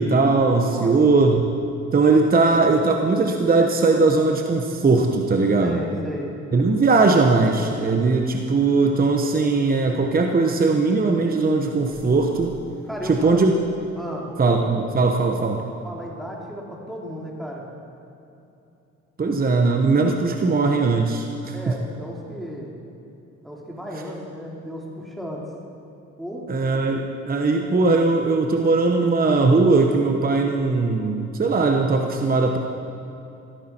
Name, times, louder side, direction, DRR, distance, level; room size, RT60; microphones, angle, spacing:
voice 1, 0.0-1.4 1.9-5.8 6.5-12.6 13.0-13.5 14.4-15.6 19.2-21.7 26.5-32.6, right 3 dB, 30° right, 3 dB, 1.0 m, -19 dB
voice 2, 5.6-6.3 12.9-13.4 13.9-14.3 15.8-17.7 21.5-22.7 23.4-25.5 26.2-26.5, equal, ahead, -3 dB, 2.8 m, -34 dB
sound 1, 11.9-14.7 15.2-15.3, left 1 dB, 75° left, 3.4 m, -48 dB
15.5 x 13.5 x 4.5 m, 2.9 s
cardioid pair, 90°, 30 cm